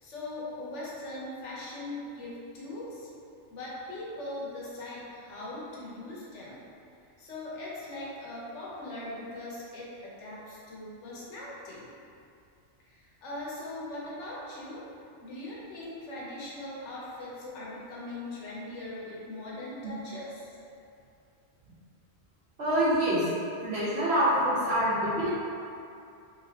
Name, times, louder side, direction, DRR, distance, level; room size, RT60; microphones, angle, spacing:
voice 1, 0.0-3.1 3.5-6.6 7.2-11.9 12.9-14.9 15.2-20.6, left 1 dB, 75° left, -6 dB, 1.1 m, -40 dB
voice 2, 22.6-23.3 23.6-25.3, right 1 dB, 60° right, -9 dB, 1.2 m, -25 dB
3.4 x 3.0 x 2.8 m, 2.5 s
omnidirectional pair, 1.2 m